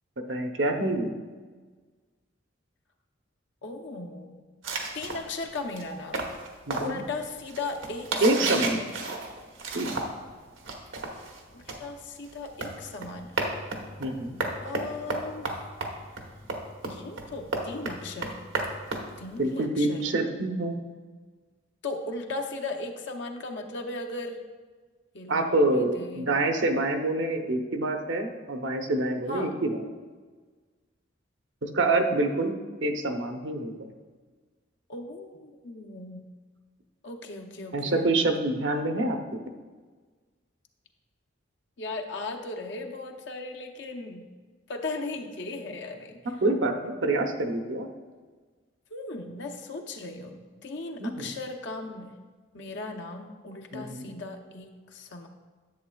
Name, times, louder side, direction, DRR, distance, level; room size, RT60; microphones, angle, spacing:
voice 1, 0.3-1.1 6.7-7.0 8.2-8.8 9.7-10.0 14.0-14.4 19.4-20.8 25.3-29.8 31.6-33.9 37.7-39.4 46.4-47.9 51.0-51.3 53.7-54.1, right 2 dB, 70° right, 4 dB, 0.8 m, -26 dB
voice 2, 3.6-4.4 4.9-6.3 6.8-8.1 8.3-8.8 11.5-13.5 14.6-15.5 16.8-18.3 19.2-20.2 21.8-24.4 25.1-26.3 29.3-29.6 34.9-36.3 37.0-38.1 41.8-44.3 44.7-46.2 48.9-52.1 52.5-55.3, left 2 dB, 65° left, 2 dB, 0.8 m, -37 dB
sound 1, 4.6-10.3 10.6-19.6, right 3 dB, 85° right, 1.1 m, -33 dB
10.5 x 7.6 x 2.3 m, 1.4 s
head